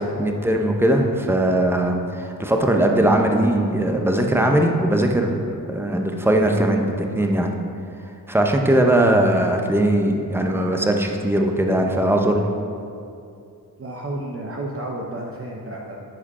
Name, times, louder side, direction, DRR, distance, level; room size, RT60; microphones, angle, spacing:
voice 1, 0.0-7.5 8.3-12.5, right 1 dB, 5° right, 2 dB, 0.9 m, -20 dB
voice 2, 13.8-16.0, right 1 dB, 35° right, -2 dB, 0.9 m, -31 dB
9.1 x 5.0 x 4.3 m, 2.5 s
cardioid pair, 60°, 40 cm